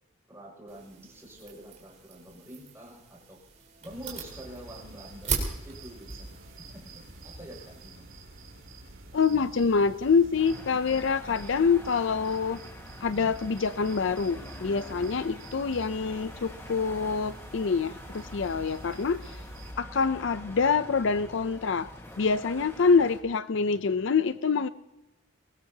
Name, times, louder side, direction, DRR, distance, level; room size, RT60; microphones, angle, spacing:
voice 1, 0.3-3.4 3.8-8.1, equal, 15° right, 6.3 m, -47 dB
sound 1, 0.7-7.9, right 5 dB, 35° right, 3.9 m, -39 dB
sound 2, 3.8-19.7, right 2 dB, 85° right, 3.3 m, -48 dB
voice 2, 9.1-12.6 13.0-19.2 19.8-21.9 22.2-24.7, left 5 dB, 65° left, 0.5 m, -26 dB
sound 3, 10.4-23.2, left 1 dB, 10° left, 1.6 m, -45 dB
22.5 x 19.5 x 2.8 m
head